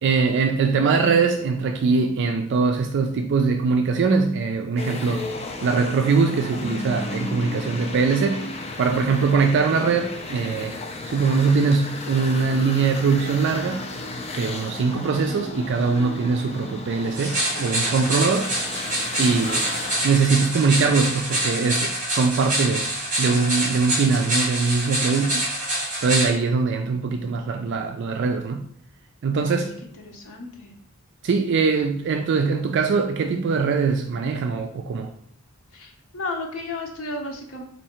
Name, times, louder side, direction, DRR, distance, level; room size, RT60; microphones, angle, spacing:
voice 1, 0.0-5.3 5.6-8.4 8.8-10.7 11.1-13.9 14.4-18.5 19.2-19.7 20.0-22.9 23.2-25.5 26.0-28.7 29.2-29.8 31.2-35.1, right 4 dB, 55° right, 0.3 m, -22 dB
sound 1, 4.8-20.1, left 2 dB, 30° left, 0.5 m, -34 dB
sound 2, 17.1-26.3, right 1 dB, 35° right, 2.0 m, -26 dB
voice 2, 30.0-30.7 35.7-37.6, left 2 dB, 75° left, 0.8 m, -33 dB
4.4 x 2.7 x 4.2 m
head